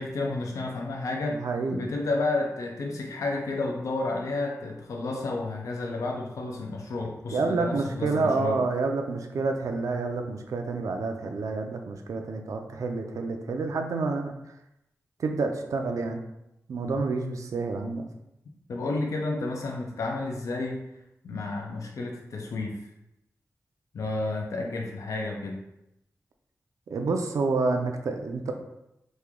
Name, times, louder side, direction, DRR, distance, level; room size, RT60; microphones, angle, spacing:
voice 1, 0.0-1.4 1.7-8.6 16.8-17.0 18.7-21.0 21.2-22.8 23.9-25.6, left 2 dB, 70° left, 1 dB, 0.4 m, -31 dB
voice 2, 1.3-1.9 7.3-14.3 15.2-16.2 16.7-18.0 26.9-28.5, right 3 dB, 75° right, 4 dB, 0.4 m, -28 dB
3.1 x 2.2 x 3.5 m, 0.86 s
wide cardioid pair, 160°, 6 cm